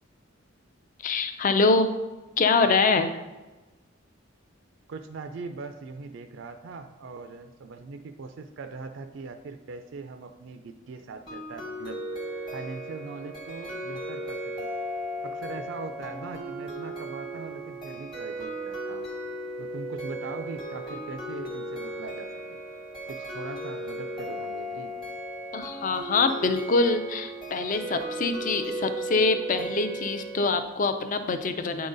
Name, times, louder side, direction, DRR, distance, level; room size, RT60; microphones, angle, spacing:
voice 1, 1.0-1.9 2.4-3.2 25.5-31.9, left 3 dB, 40° left, 9 dB, 0.4 m, -24 dB
voice 2, 4.9-12.0 12.5-14.7 15.2-19.1 19.6-22.6 23.1-24.9, right 4 dB, 65° right, 7 dB, 0.4 m, -41 dB
sound 1, 11.3-30.5, right 1 dB, 25° left, 1.1 m, -36 dB
8.8 x 3.8 x 3.9 m, 1.1 s
head